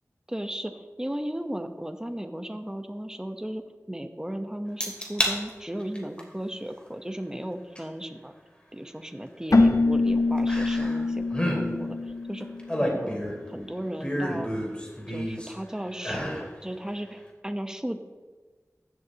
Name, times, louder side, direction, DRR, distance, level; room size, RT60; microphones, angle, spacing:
voice 1, 0.3-0.7 1.0-8.3 8.7-12.5 12.7-13.2 13.5-14.5 15.1-18.0, right 1 dB, 10° right, 6 dB, 1.0 m, -35 dB
sound 1, 4.8-5.4 5.8-6.2 7.8-7.9 10.5-11.0 11.3-11.6 12.4-13.5 14.0-15.5 16.0-16.5 16.9-17.0, equal, 20° left, 2.6 m, -29 dB
Keyboard (musical), 9.5-13.1, left 3 dB, 80° left, 0.8 m, -24 dB
15.0 x 11.5 x 3.0 m, 1.3 s
wide cardioid pair, 55°, 6 cm